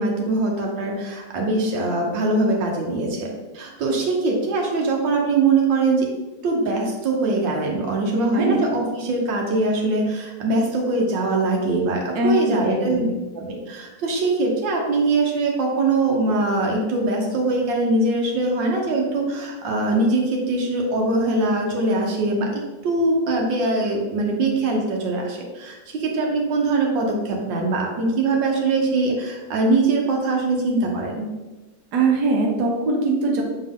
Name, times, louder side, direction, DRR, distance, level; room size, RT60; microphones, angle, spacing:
voice 1, 0.0-3.3 3.5-6.1 6.4-13.0 13.4-31.3, right 2 dB, 80° right, 0 dB, 1.8 m, -22 dB
voice 2, 8.3-8.6 12.1-13.1 31.9-33.4, right 2 dB, 65° right, -1 dB, 1.5 m, -21 dB
6.7 x 4.4 x 3.6 m, 1.2 s
omnidirectional pair, 2.0 m